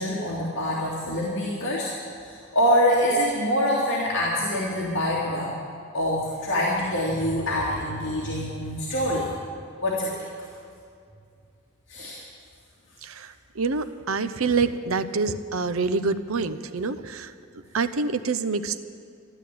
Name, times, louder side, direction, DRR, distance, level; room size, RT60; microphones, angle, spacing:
voice 1, 0.0-1.9 2.2-5.5 5.9-9.3 9.8-10.1 11.9-12.2, equal, 60° left, -6 dB, 2.7 m, -25 dB
voice 2, 13.0-17.3 17.7-18.8, right 4 dB, 85° right, 12 dB, 0.7 m, -26 dB
14.0 x 12.0 x 8.5 m, 2.3 s
head